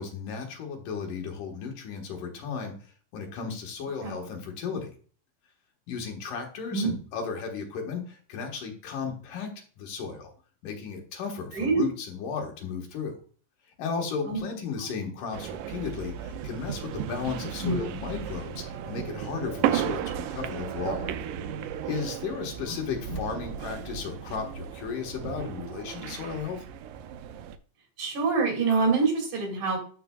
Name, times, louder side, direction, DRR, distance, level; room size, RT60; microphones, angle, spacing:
voice 1, 0.0-2.8 3.1-4.9 5.9-10.3 10.6-13.2 13.8-21.1 21.9-26.6, left 5 dB, 80° left, 2 dB, 3.0 m, -35 dB
voice 2, 11.5-11.8 14.3-14.4 17.6-17.8 23.1-23.2 28.0-29.8, right 4 dB, 65° right, 0 dB, 3.8 m, -25 dB
sound 1, 15.3-27.6, right 10 dB, 90° right, 2.2 m, -34 dB
12.5 x 5.0 x 2.3 m, 0.41 s
omnidirectional pair, 3.7 m